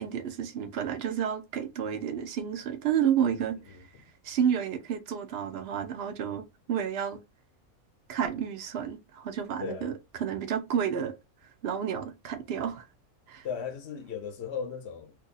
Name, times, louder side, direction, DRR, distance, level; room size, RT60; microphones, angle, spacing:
voice 1, 0.0-3.6 4.2-7.2 8.1-9.9 10.2-11.1 11.6-12.9 13.3-13.5, right 8 dB, 65° right, 0.6 m, -30 dB
voice 2, 3.3-4.1 9.6-10.0 13.4-15.1, left 6 dB, 60° left, 0.7 m, -37 dB
2.6 x 2.6 x 3.9 m
omnidirectional pair, 1.5 m